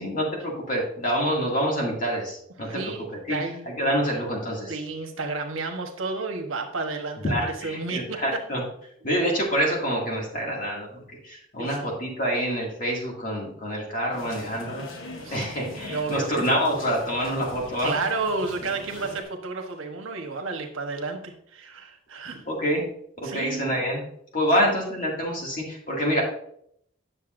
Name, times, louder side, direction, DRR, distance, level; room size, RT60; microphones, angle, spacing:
voice 1, 0.0-2.9 3.3-3.4 3.7-4.7 7.2-8.6 9.0-14.8 15.3-17.9 22.5-22.8 23.2-24.0 24.3-26.2, equal, 40° left, -2 dB, 2.3 m, -26 dB
voice 2, 2.6-3.7 4.7-7.3 7.6-8.2 11.6-11.9 15.2-16.5 17.8-22.4 23.2-23.6 24.6-24.7, right 3 dB, 85° right, 3 dB, 1.2 m, -32 dB
sound 1, 14.1-19.2, left 2 dB, 80° left, 1.1 m, -41 dB
9.4 x 6.7 x 2.6 m, 0.69 s
head